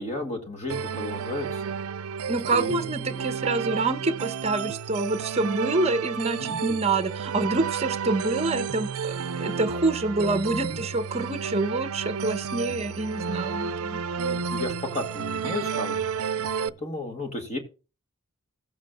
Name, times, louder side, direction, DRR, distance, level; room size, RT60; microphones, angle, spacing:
voice 1, 0.0-1.8 2.3-3.3 6.4-6.6 10.5-10.8 14.2-17.6, left 2 dB, 30° left, 2.0 m, -34 dB
sound 1, 0.7-16.7, right 6 dB, 85° right, 0.4 m, -31 dB
voice 2, 2.3-9.1 9.4-14.0, right 2 dB, 30° right, 0.8 m, -27 dB
16.5 x 7.4 x 2.4 m
head